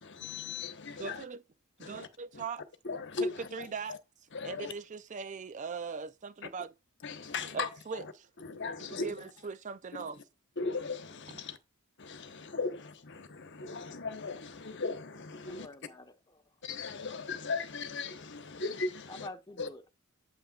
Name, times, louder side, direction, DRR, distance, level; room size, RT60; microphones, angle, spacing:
voice 1, 0.0-1.2 1.8-2.1 2.3-2.4 2.8-4.0 4.3-4.7 7.0-8.1 8.4-9.1 10.0-10.1 10.6-11.6 12.0-15.7 16.6-19.3 19.6-19.7, left 4 dB, 55° left, 1.1 m, -38 dB
voice 2, 1.0-1.4 1.8-2.6 3.2-4.0 4.4-6.7 7.5-8.3 8.8-10.2 11.3-11.4, right 5 dB, 35° right, 0.4 m, -40 dB
voice 3, 15.4-16.5 19.1-19.9, left 2 dB, 20° left, 1.1 m, -48 dB
8.7 x 8.1 x 2.4 m
head